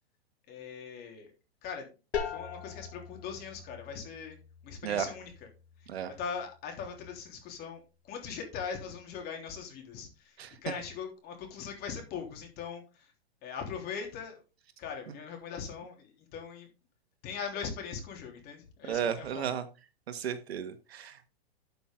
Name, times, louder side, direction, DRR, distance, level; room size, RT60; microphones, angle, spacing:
voice 1, 0.5-1.3 1.6-1.9 2.2-4.4 4.6-5.3 6.2-10.4 10.6-13.1 13.4-14.4 14.8-16.7 17.2-19.5, left 6 dB, 30° left, 3 dB, 3.2 m, -40 dB
sound 1, 2.1-7.7, left 7 dB, 90° left, 2.9 m, -42 dB
voice 2, 18.9-19.7 20.1-21.3, right 8 dB, 75° right, 9 dB, 1.7 m, -34 dB
12.5 x 6.0 x 3.8 m, 0.32 s
hypercardioid pair, 145°, 32 cm